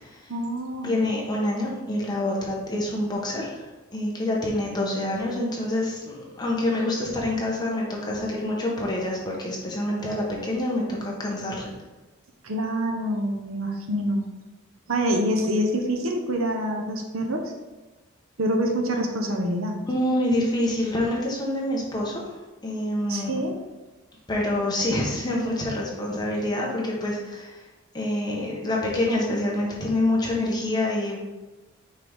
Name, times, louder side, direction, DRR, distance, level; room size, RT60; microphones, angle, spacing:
voice 1, 0.3-1.0 12.4-14.3 14.9-17.5 18.4-19.8 23.1-23.5, equal, 85° right, 2 dB, 1.0 m, -26 dB
voice 2, 0.8-11.7 19.9-23.4 24.3-27.6 27.9-31.2, left 1 dB, 20° left, -3 dB, 1.2 m, -27 dB
6.0 x 4.7 x 3.6 m, 1.1 s
head